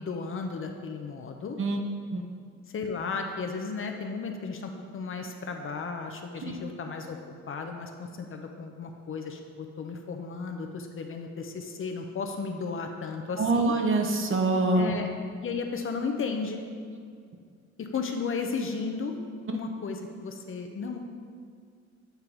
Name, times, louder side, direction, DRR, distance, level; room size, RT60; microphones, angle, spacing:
voice 1, 0.0-1.6 2.7-7.2 7.5-13.7 14.7-15.1 15.4-16.6 17.8-19.2 19.5-21.0, left 4 dB, 45° left, 4 dB, 0.7 m, -34 dB
voice 2, 13.4-14.9 19.5-19.6, right 2 dB, 45° right, 3 dB, 0.8 m, -25 dB
8.1 x 3.7 x 4.6 m, 2.2 s
cardioid pair, 90°, 30 cm